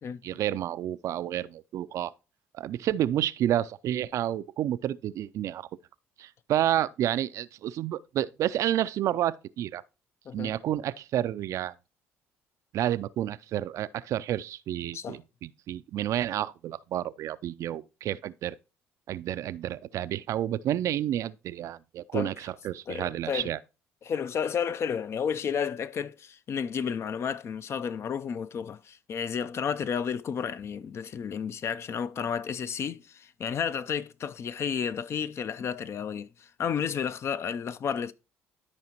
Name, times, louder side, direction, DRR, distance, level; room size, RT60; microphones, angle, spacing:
voice 1, 0.2-2.1 2.5-5.7 6.2-9.8 10.3-11.7 12.7-18.6 19.1-23.6, right 12 dB, 55° right, 0.4 m, -30 dB
voice 2, 22.9-23.5 24.0-38.1, left 7 dB, 45° left, 0.5 m, -32 dB
13.0 x 4.9 x 2.9 m
hypercardioid pair, 65°, 6 cm